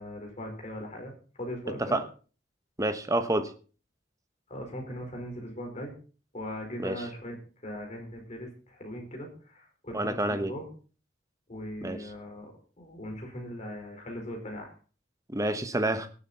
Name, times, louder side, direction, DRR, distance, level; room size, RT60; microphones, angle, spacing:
voice 1, 0.0-2.0 4.5-5.9 6.3-7.4 7.6-10.7 11.5-14.7, equal, 40° left, 4.7 m, -39 dB
voice 2, 2.8-3.5 6.8-7.0 9.9-10.5 11.8-12.0 15.3-16.1, right 1 dB, 20° right, 1.1 m, -28 dB
18.5 x 8.4 x 4.3 m
head